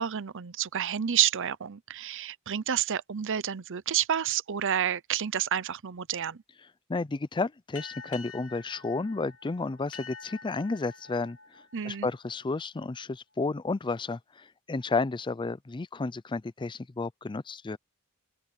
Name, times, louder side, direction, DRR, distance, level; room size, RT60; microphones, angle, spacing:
voice 1, 0.0-6.4 11.7-12.1, right 9 dB, 60° right, 0.7 m, -29 dB
voice 2, 6.9-17.8, left 3 dB, 20° left, 0.4 m, -32 dB
sound 1, 7.7-12.8, left 5 dB, 65° left, 3.1 m, -48 dB
open air
head